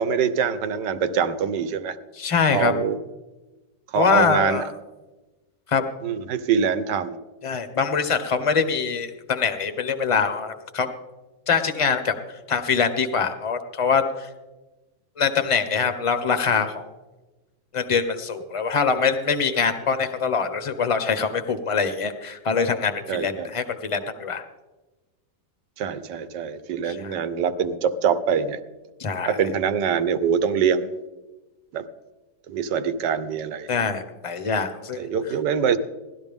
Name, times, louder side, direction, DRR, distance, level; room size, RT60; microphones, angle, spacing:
voice 1, 0.0-2.0 2.5-3.0 3.9-4.6 6.0-7.2 23.1-23.5 25.8-28.6 29.3-30.9 31.7-31.8 32.5-33.7 35.0-35.8, right 7 dB, 70° right, 13 dB, 1.4 m, -24 dB
voice 2, 2.2-2.7 3.9-4.6 5.7-5.8 7.4-10.9 11.5-12.1 12.5-14.3 15.2-16.9 17.7-24.4 26.8-27.1 29.0-29.4 33.7-35.1, left 5 dB, 30° left, 9 dB, 0.6 m, -23 dB
17.5 x 12.5 x 3.6 m, 1.1 s
omnidirectional pair, 2.1 m